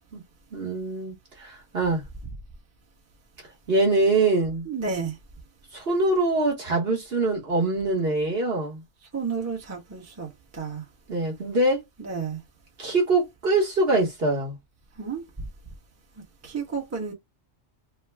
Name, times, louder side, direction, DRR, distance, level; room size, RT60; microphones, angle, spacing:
voice 1, 0.5-2.0 3.7-4.6 5.7-8.8 11.1-11.8 12.8-14.6, right 2 dB, 50° right, 1.4 m, -24 dB
voice 2, 4.7-5.2 9.1-10.8 12.0-12.4 15.0-15.2 16.4-17.1, right 5 dB, 15° right, 0.9 m, -31 dB
3.4 x 2.2 x 3.2 m
omnidirectional pair, 1.4 m